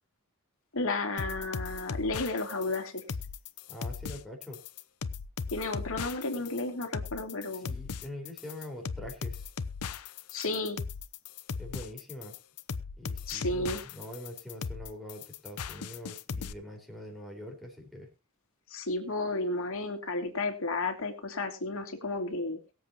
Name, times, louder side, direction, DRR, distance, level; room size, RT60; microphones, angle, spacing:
voice 1, 0.7-3.0 5.5-7.7 10.3-10.8 13.3-13.8 18.7-22.6, left 2 dB, 65° left, 4 dB, 2.7 m, -32 dB
sound 1, 1.2-16.5, left 5 dB, 85° left, 0.7 m, -38 dB
voice 2, 3.7-4.6 7.5-9.5 11.6-12.3 13.0-18.1, left 1 dB, ahead, 1 dB, 4.6 m, -44 dB
22.5 x 7.8 x 2.9 m, 0.28 s
head